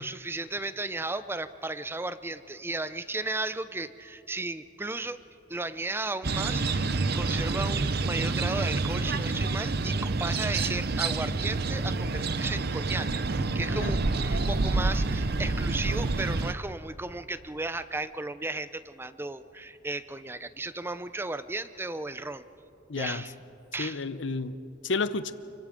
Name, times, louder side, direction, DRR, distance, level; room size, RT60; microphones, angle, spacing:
voice 1, 0.0-5.2 5.5-22.5 23.0-23.3 23.7-24.1, right 2 dB, 10° right, 13 dB, 0.6 m, -35 dB
sound 1, 6.2-16.5, right 3 dB, 55° right, 0.7 m, -28 dB
voice 2, 22.9-23.2 23.8-25.3, left 3 dB, 65° left, 13 dB, 0.8 m, -31 dB
29.0 x 24.0 x 5.2 m, 3.0 s
head